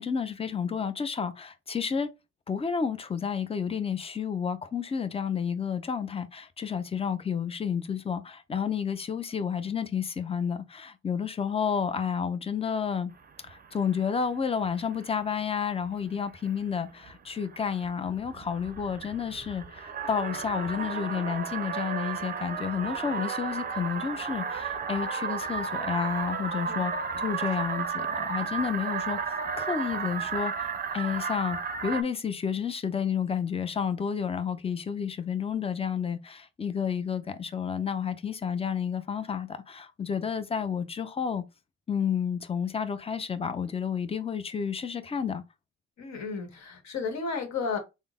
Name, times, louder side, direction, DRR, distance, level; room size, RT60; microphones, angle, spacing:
voice 1, 0.0-2.1 2.5-13.1 13.4-26.9 27.2-29.2 29.6-41.4 41.9-45.4, left 7 dB, 20° left, 0.5 m, -31 dB
sound 1, 13.2-14.2 14.5-15.3 15.9-16.0 16.3-16.6 16.9-32.0, right 6 dB, 30° right, 0.5 m, -33 dB
voice 2, 46.0-47.8, left 5 dB, 65° left, 1.2 m, -33 dB
3.7 x 2.1 x 3.6 m
cardioid pair, 90°, 30 cm